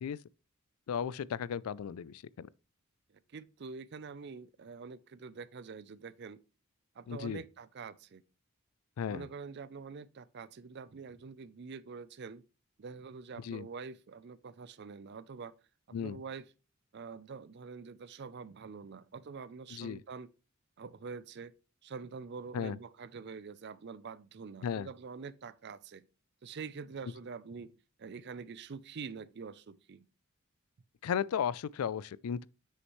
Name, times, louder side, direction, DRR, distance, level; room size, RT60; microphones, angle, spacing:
voice 1, 0.9-2.5 7.1-7.4 9.0-9.3 13.4-13.7 15.9-16.2 19.7-20.0 22.5-22.8 24.6-24.9 31.0-32.5, left 7 dB, 80° left, 0.3 m, -35 dB
voice 2, 3.3-6.4 7.0-8.2 9.1-12.4 12.8-15.5 15.9-16.4 16.9-20.3 20.8-21.5 21.8-26.1 26.4-27.7 28.0-30.1, right 5 dB, 50° right, 0.4 m, -45 dB
7.8 x 6.4 x 3.1 m
head